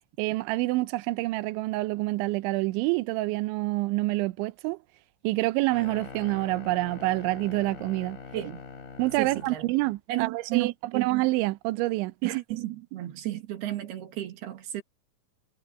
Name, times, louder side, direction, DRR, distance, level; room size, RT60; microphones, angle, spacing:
voice 1, 0.2-4.8 5.2-8.2 9.0-12.3, right 20 dB, 80° right, 3.1 m, -27 dB
sound 1, 5.7-9.6, left 5 dB, 55° left, 5.8 m, -43 dB
voice 2, 8.3-8.6 9.2-9.7 10.1-11.1 12.2-14.8, right 15 dB, 60° right, 3.7 m, -33 dB
omnidirectional pair, 5.6 m